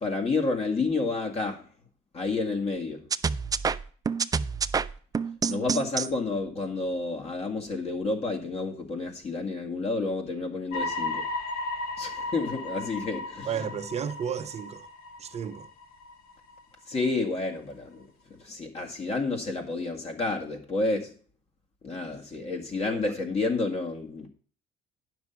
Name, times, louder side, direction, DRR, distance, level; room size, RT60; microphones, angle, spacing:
voice 1, 0.0-1.7 2.1-3.1 5.5-11.2 12.0-13.7 16.9-21.1 21.8-24.3, left 3 dB, 40° left, 1.9 m, -30 dB
sound 1, 3.1-6.1, right 5 dB, 20° right, 0.4 m, -27 dB
sound 2, 10.7-16.6 17.0-17.1, left 2 dB, 60° left, 1.3 m, -35 dB
voice 2, 13.4-14.9 15.2-15.7 22.9-23.0, right 8 dB, 40° right, 0.8 m, -33 dB
9.0 x 6.1 x 5.7 m
cardioid pair, 110°, 17 cm